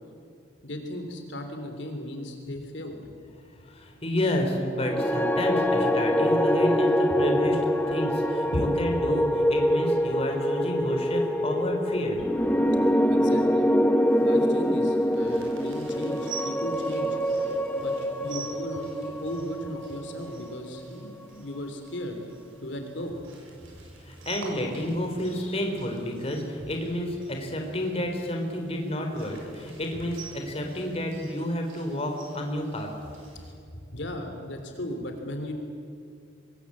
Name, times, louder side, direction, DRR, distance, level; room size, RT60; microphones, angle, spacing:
voice 1, 0.6-3.0 3.6-3.9 7.1-7.2 8.5-8.7 12.8-13.7 14.2-17.2 17.7-22.2 22.6-23.2 29.9-30.0 33.4-33.5 33.9-35.5, left 1 dB, 65° left, 5 dB, 3.2 m, -36 dB
voice 2, 3.6-7.6 7.9-12.2 24.0-32.9, left 1 dB, 30° left, 3 dB, 3.5 m, -30 dB
sound 1, 4.8-21.1, equal, 10° left, 0.8 m, -25 dB
sound 2, 14.1-33.5, right 5 dB, 90° right, 7.5 m, -48 dB
25.5 x 21.5 x 8.6 m, 2.4 s
head